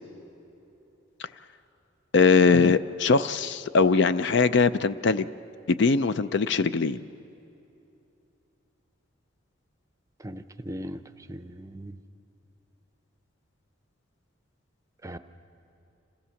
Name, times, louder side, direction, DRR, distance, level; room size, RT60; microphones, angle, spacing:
voice 1, 2.1-5.3 5.7-7.0, left 4 dB, 60° left, 14 dB, 0.5 m, -21 dB
voice 2, 10.2-11.0 11.3-11.9 15.0-15.2, equal, 15° right, 9 dB, 0.6 m, -38 dB
27.0 x 16.5 x 7.0 m, 2.9 s
head